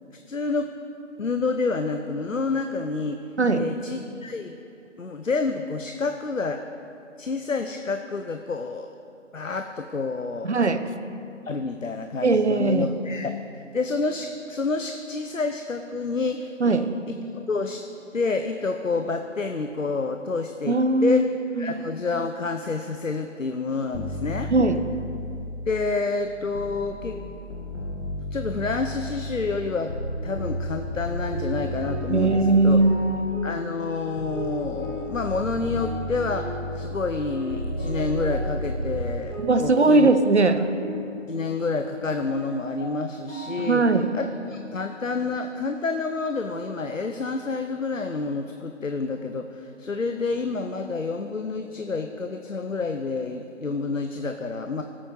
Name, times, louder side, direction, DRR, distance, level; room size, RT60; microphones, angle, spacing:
voice 1, 0.3-0.7 1.2-3.2 3.5-4.5 5.0-6.6 7.2-8.9 9.3-10.5 11.4-13.3 13.7-16.8 17.1-17.8 18.1-21.3 21.6-24.5 25.7-27.2 28.3-29.9 30.2-32.8 33.4-40.1 41.3-43.8 44.1-54.8, left 4 dB, 80° left, 6 dB, 0.8 m, -28 dB
voice 2, 10.4-10.9 12.2-12.9 16.6-16.9 20.7-21.2 21.6-21.8 24.5-24.8 32.1-33.2 39.4-40.7 43.6-44.1, right 3 dB, 60° right, 10 dB, 0.8 m, -20 dB
sound 1, 23.9-26.1 26.6-33.7 34.2-39.2, left 1 dB, 65° left, 1.5 m, -33 dB
sound 2, 30.1-44.7, equal, 10° right, 0.9 m, -38 dB
18.5 x 8.6 x 4.6 m, 2.7 s
figure-of-eight pair, 155°, 39 cm